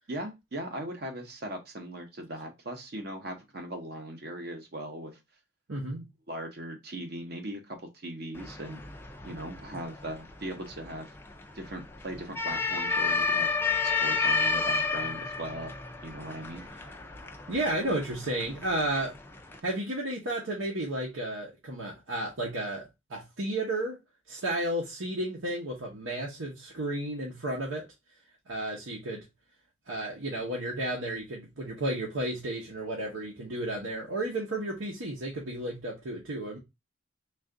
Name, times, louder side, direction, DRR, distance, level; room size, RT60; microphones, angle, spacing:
voice 1, 0.1-5.2 6.3-8.8 9.2-11.1 11.5-13.5 13.8-15.7 16.0-16.6, right 1 dB, 50° right, 0.8 m, -39 dB
voice 2, 5.7-6.1 17.5-19.1 19.6-22.8 23.1-24.0 24.3-27.8 28.5-29.2 29.9-36.6, right 1 dB, 85° right, 0.9 m, -32 dB
sound 1, 8.3-19.6, left 4 dB, 10° left, 0.4 m, -32 dB
3.3 x 2.5 x 3.7 m
head